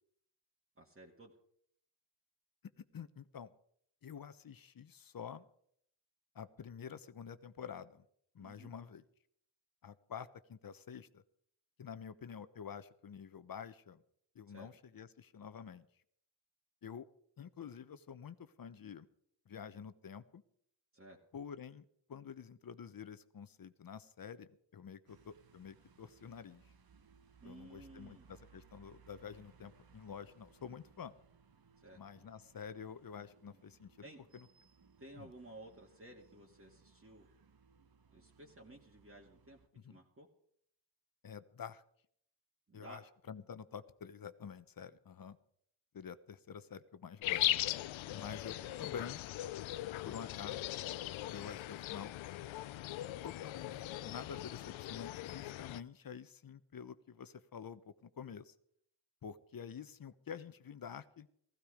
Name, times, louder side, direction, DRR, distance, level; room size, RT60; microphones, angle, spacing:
voice 1, 0.8-1.3 8.4-8.8 14.5-14.7 20.9-21.2 27.4-28.3 31.8-32.0 34.0-34.2 35.0-37.3 38.1-40.3 42.7-43.0 48.1-48.8, right 1 dB, 30° right, -2 dB, 2.3 m, -55 dB
voice 2, 2.8-3.5 4.0-5.4 6.3-8.0 8.3-9.0 9.8-11.2 11.8-14.0 14.3-15.9 16.8-17.1 17.4-19.1 19.5-20.4 21.3-26.7 27.4-31.2 31.9-34.0 34.3-34.5 35.2-35.3 39.8-40.0 41.2-41.8 42.7-45.4 45.9-47.5 48.1-49.2 50.0-50.7 51.3-52.1 53.2-58.5 59.2-61.3, left 7 dB, 50° left, 13 dB, 1.0 m, -48 dB
sound 1, 25.1-39.7, right 5 dB, 50° right, 1.5 m, -65 dB
sound 2, 47.2-55.8, left 14 dB, 90° left, 0.6 m, -39 dB
16.0 x 15.0 x 5.1 m, 0.67 s
cardioid pair, 75°, 45 cm